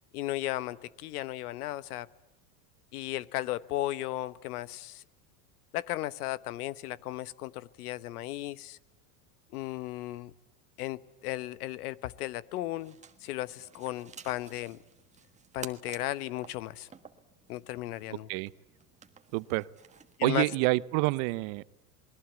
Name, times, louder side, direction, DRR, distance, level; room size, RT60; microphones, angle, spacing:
voice 1, 0.1-2.1 2.9-5.0 5.7-8.8 9.5-10.3 10.8-13.0 13.2-14.8 15.5-16.9 17.5-18.3 20.2-20.5, left 16 dB, 80° left, 17 dB, 1.1 m, -35 dB
sound 1, 12.7-20.2, right 6 dB, 15° right, 1.5 m, -52 dB
voice 2, 19.3-19.7 20.2-21.6, right 22 dB, 55° right, 18 dB, 0.8 m, -27 dB
28.0 x 21.0 x 8.2 m, 0.97 s
supercardioid pair, 125°, 44 cm